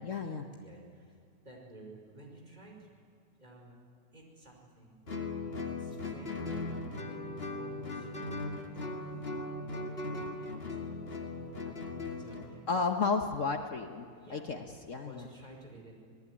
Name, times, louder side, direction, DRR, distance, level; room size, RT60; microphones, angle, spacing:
voice 1, 0.0-0.5 12.7-15.3, left 4 dB, 55° left, 5 dB, 1.5 m, -33 dB
voice 2, 1.5-2.7 3.4-3.7 4.1-5.1 5.8-7.2 7.6-8.6 10.4-11.7 12.2-12.6 14.2-14.4 15.0-15.9, right 1 dB, 25° right, -1 dB, 5.3 m, -53 dB
Guitar, 5.1-12.5, left 2 dB, 40° left, 2.3 m, -38 dB
27.0 x 18.5 x 9.8 m, 2.3 s
omnidirectional pair, 1.7 m